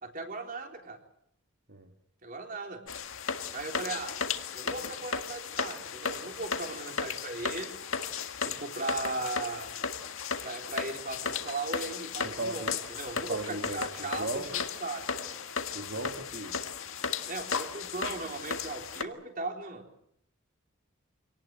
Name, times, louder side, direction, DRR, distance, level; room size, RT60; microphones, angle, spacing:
voice 1, 0.0-1.0 2.2-2.8 3.5-4.1 4.5-7.8 8.4-9.7 10.4-12.6 12.9-15.4 17.3-19.8, right 3 dB, 40° right, 3 dB, 3.8 m, -37 dB
sound 1, 2.9-19.0, left 6 dB, 75° left, 1.8 m, -35 dB
voice 2, 12.2-12.8 13.2-14.5 15.7-16.6, right 2 dB, 55° right, 3 dB, 2.2 m, -37 dB
26.5 x 19.0 x 7.8 m, 0.71 s
head